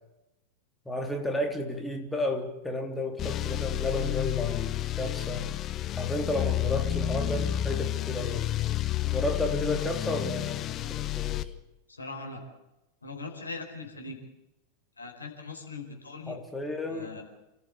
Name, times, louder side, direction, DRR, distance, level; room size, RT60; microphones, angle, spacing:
voice 1, 0.9-5.5 6.0-8.5 9.0-11.5 16.3-17.2, left 1 dB, 5° left, 4 dB, 3.5 m, -32 dB
sound 1, 3.2-11.4, left 13 dB, 30° left, 1.0 m, -30 dB
voice 2, 11.9-12.4 13.0-14.2 15.0-16.4 16.9-17.2, left 3 dB, 80° left, 3 dB, 4.7 m, -40 dB
28.5 x 14.5 x 8.4 m, 0.96 s
figure-of-eight pair, 90°, 0 cm